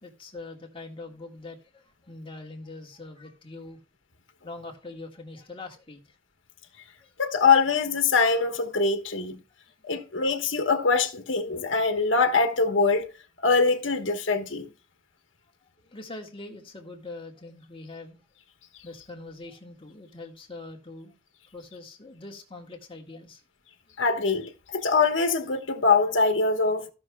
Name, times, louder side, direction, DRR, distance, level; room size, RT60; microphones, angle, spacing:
voice 1, 0.0-3.8 4.4-6.0 7.0-7.1 15.8-18.2 18.8-21.1 21.5-23.4, left 2 dB, 30° left, 1.7 m, -43 dB
voice 2, 7.2-9.4 9.8-13.1 13.4-14.7 24.0-26.9, left 4 dB, 75° left, 1.2 m, -23 dB
15.5 x 6.2 x 2.3 m
head